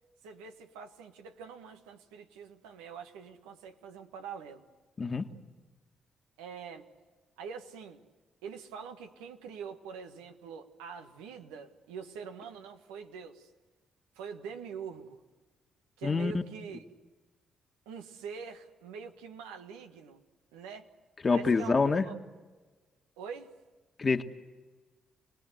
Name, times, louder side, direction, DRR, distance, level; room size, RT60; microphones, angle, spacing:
voice 1, 0.2-4.6 6.4-6.9 7.4-8.0 8.4-13.5 14.1-15.2 16.0-16.8 17.8-20.2 20.5-20.9 21.3-22.1 23.2-23.5, right 6 dB, 90° right, 5 dB, 1.5 m, -44 dB
voice 2, 16.0-16.3 21.2-22.1 24.0-24.2, left 4 dB, 40° left, 6 dB, 1.8 m, -26 dB
28.5 x 19.5 x 8.1 m, 1.3 s
hypercardioid pair, 50°, 0 cm